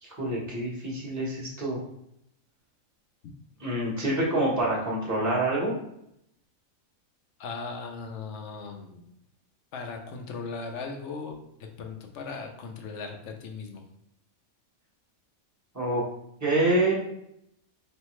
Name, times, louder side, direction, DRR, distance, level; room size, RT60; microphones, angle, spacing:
voice 1, 0.0-1.8 3.6-5.7 15.7-16.0 16.4-16.9, right 1 dB, 15° right, -5 dB, 1.0 m, -26 dB
voice 2, 7.4-9.0 9.7-11.4 11.8-13.8, left 4 dB, 60° left, 3 dB, 0.9 m, -38 dB
4.5 x 3.2 x 3.1 m, 0.77 s
omnidirectional pair, 1.5 m